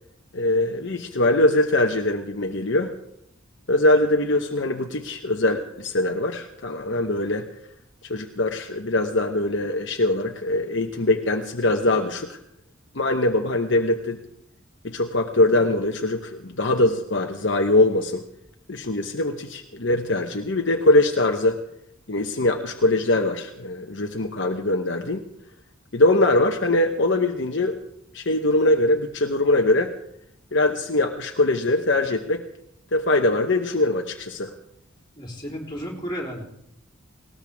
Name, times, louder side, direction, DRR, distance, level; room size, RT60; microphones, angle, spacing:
voice 1, 0.3-2.9 3.7-7.5 8.1-12.4 12.9-14.2 14.8-18.2 18.7-21.6 22.1-25.2 25.9-27.8 28.1-29.9 30.5-32.4 32.9-34.5, left 2 dB, 60° left, 3 dB, 1.1 m, -22 dB
voice 2, 35.2-36.4, equal, 20° left, -2 dB, 3.9 m, -33 dB
19.5 x 18.5 x 3.6 m, 0.75 s
head